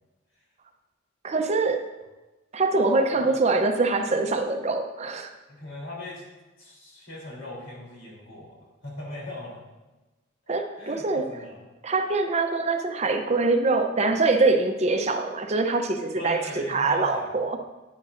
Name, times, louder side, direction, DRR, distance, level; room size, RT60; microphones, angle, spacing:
voice 1, 1.2-1.8 2.5-5.3 10.5-11.4 11.8-17.6, right 3 dB, 35° right, 5 dB, 0.6 m, -24 dB
voice 2, 5.5-6.2 6.6-8.6 8.8-9.6 10.5-11.6 16.1-17.4, left 1 dB, 85° left, -3 dB, 3.3 m, -40 dB
10.5 x 9.7 x 2.6 m, 1.1 s
head